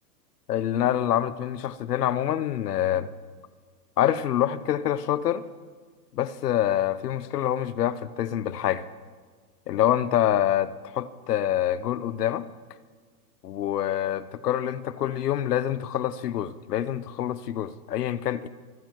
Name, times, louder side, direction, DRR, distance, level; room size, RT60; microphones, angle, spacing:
voice 1, 0.5-3.1 4.0-5.4 6.1-8.9 9.7-12.5 13.4-18.5, left 11 dB, 75° left, 0.8 m, -26 dB
26.5 x 12.0 x 3.1 m
hypercardioid pair, 160°, 47 cm